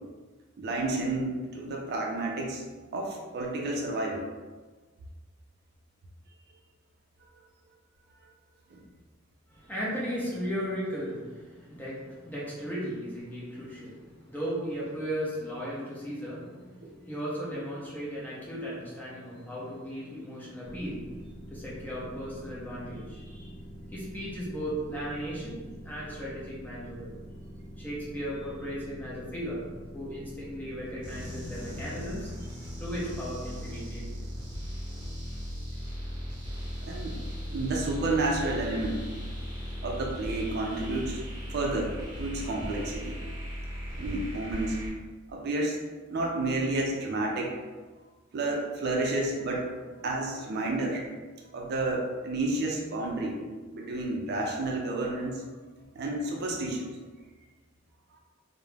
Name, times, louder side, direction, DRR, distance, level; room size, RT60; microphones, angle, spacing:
voice 1, 0.6-2.6 2.9-4.2 8.7-8.8 36.8-37.2 37.5-39.1 39.8-41.2 41.5-43.4 44.0-44.8 45.3-45.8 46.1-47.5 48.3-49.6 50.0-51.1 51.5-53.4 53.7-55.4 56.0-56.9, right 2 dB, 55° right, 0 dB, 0.4 m, -30 dB
voice 2, 9.5-25.6 25.8-27.1 27.8-29.7 29.9-34.1, equal, 10° left, -7 dB, 0.7 m, -36 dB
sound 1, 20.6-32.3, equal, 65° left, 0.8 m, -45 dB
sound 2, 31.0-44.9, equal, 25° right, 0.9 m, -37 dB
2.4 x 2.0 x 3.1 m, 1.3 s
head